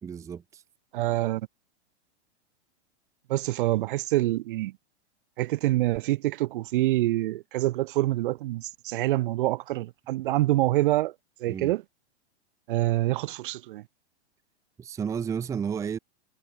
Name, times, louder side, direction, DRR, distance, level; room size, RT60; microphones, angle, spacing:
voice 1, 0.0-0.6 11.5-11.7 14.8-16.0, right 7 dB, 10° right, 0.9 m, -32 dB
voice 2, 0.9-1.4 3.3-4.7 5.4-11.1 11.4-11.8 12.7-13.8, right 16 dB, 50° right, 1.3 m, -26 dB
supercardioid pair, 165°, 34 cm